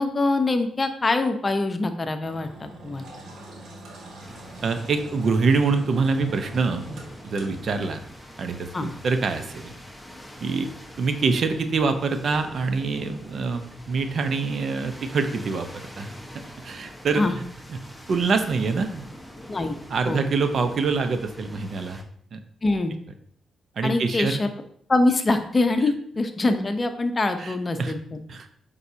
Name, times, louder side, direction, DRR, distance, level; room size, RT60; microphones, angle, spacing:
voice 1, 0.0-3.1 8.7-8.9 17.2-17.4 19.5-19.8 20.1-20.2 22.6-22.9 23.8-24.5 24.9-28.2, left 2 dB, 30° left, 7 dB, 0.8 m, -24 dB
Engine, 2.2-9.8, right 1 dB, 75° right, 1.7 m, -45 dB
sound 1, 4.2-22.0, equal, ahead, 1.2 m, -44 dB
voice 2, 4.6-8.0 8.4-9.7 10.4-10.7 11.0-16.1 16.6-17.2 17.7-17.8 18.1-19.1 19.9-22.0 22.3-22.4 23.8-24.4 27.4-27.9 28.3-28.5, right 4 dB, 60° right, 8 dB, 0.8 m, -25 dB
8.0 x 5.4 x 2.8 m, 0.64 s
cardioid pair, 70°, 0 cm